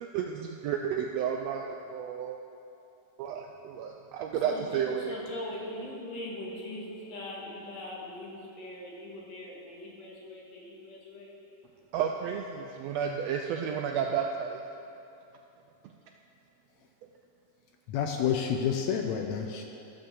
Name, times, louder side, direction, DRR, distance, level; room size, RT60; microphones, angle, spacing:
voice 1, 0.0-2.4 3.2-5.1 11.9-14.6 15.8-15.9, right 7 dB, 80° right, 3 dB, 1.5 m, -32 dB
voice 2, 5.0-11.5, left 1 dB, 60° left, -4 dB, 2.8 m, -41 dB
voice 3, 17.9-19.6, left 8 dB, 80° left, 4 dB, 1.7 m, -29 dB
14.0 x 5.5 x 7.0 m, 2.8 s
omnidirectional pair, 3.4 m